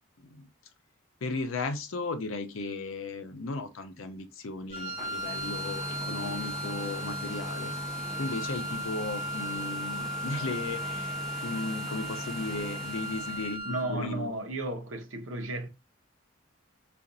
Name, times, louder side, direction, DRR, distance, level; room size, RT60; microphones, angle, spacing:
voice 1, 1.2-7.7 8.2-11.1 11.4-14.3, left 3 dB, 85° left, 0.6 m, -36 dB
sound 1, 4.7-13.6, right 1 dB, 5° left, 0.5 m, -40 dB
Wind instrument woodwind instrument, 4.7-14.0, equal, 35° right, 0.8 m, -37 dB
voice 2, 13.3-15.7, right 1 dB, 80° right, 0.8 m, -34 dB
4.8 x 2.5 x 2.6 m
head